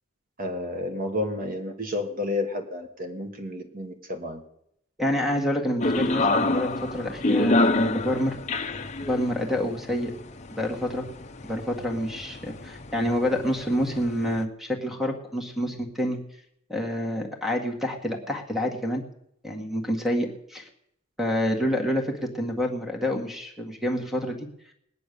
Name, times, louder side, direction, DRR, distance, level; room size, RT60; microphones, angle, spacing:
voice 1, 0.4-4.4, left 2 dB, 45° right, 5 dB, 1.5 m, -31 dB
voice 2, 5.0-8.4 9.0-10.1 10.6-11.0 11.4-16.2 16.7-19.0 19.4-20.7 21.2-24.5, equal, ahead, 3 dB, 1.8 m, -28 dB
sound 1, 5.8-14.4, left 2 dB, 35° left, 0.8 m, -28 dB
20.0 x 9.4 x 6.8 m, 0.75 s
head